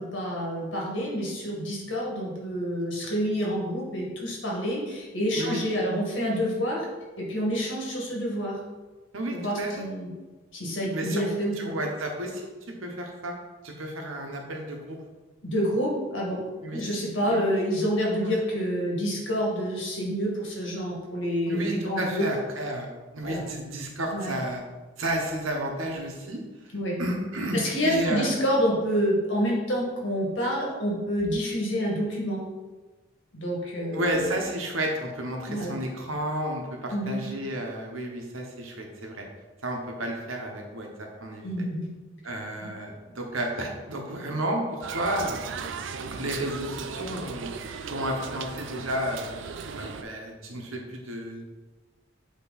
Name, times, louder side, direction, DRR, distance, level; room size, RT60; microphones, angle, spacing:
voice 1, 0.0-6.9 7.2-8.6 9.3-10.1 10.5-11.8 15.4-16.4 16.7-22.3 23.2-23.4 24.1-24.4 26.7-27.0 27.5-32.4 33.3-34.3 35.5-35.8 36.9-37.2 41.4-41.9, equal, 65° left, -3 dB, 1.9 m, -28 dB
voice 2, 9.1-9.8 10.9-12.4 12.8-13.3 13.6-15.0 16.6-16.8 17.3-17.4 18.2-18.4 21.5-24.6 25.0-26.4 27.0-28.3 33.9-39.2 39.6-41.4 42.2-45.4 46.1-47.5 47.9-49.4 49.7-51.6, right 1 dB, 85° right, 1 dB, 1.1 m, -32 dB
sound 1, 44.8-50.0, right 5 dB, 65° right, 0.4 m, -37 dB
8.3 x 3.2 x 4.1 m, 1.3 s
head